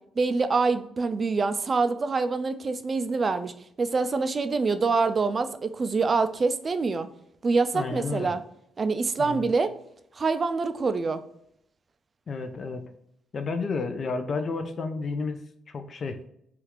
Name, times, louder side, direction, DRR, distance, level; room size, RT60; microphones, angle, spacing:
voice 1, 0.2-7.1 7.4-8.4 8.8-9.7 10.2-11.2, right 4 dB, 35° right, 10 dB, 0.3 m, -25 dB
voice 2, 7.7-8.3 9.2-9.5 12.3-12.9 13.3-15.4 15.7-16.2, left 4 dB, 45° left, 8 dB, 0.4 m, -31 dB
2.9 x 2.4 x 3.3 m, 0.72 s
cardioid pair, 90°, 0 cm